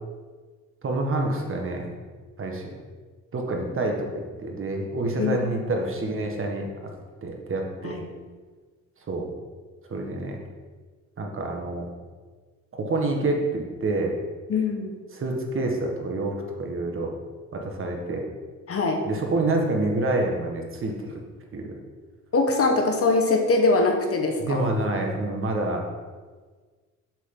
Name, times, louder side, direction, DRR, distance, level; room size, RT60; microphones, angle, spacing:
voice 1, 0.8-1.9 2.4-2.7 3.3-6.7 7.2-8.0 9.1-9.2 9.9-10.4 11.2-11.9 12.7-14.1 15.1-17.1 17.5-18.2 19.0-21.2 21.5-21.8 24.4-25.8, right 2 dB, 45° right, 1 dB, 1.6 m, -27 dB
voice 2, 14.5-15.0 18.7-19.0 22.3-24.6, left 3 dB, 50° left, 3 dB, 1.4 m, -22 dB
7.9 x 7.3 x 3.9 m, 1.4 s
cardioid pair, 90°, 30 cm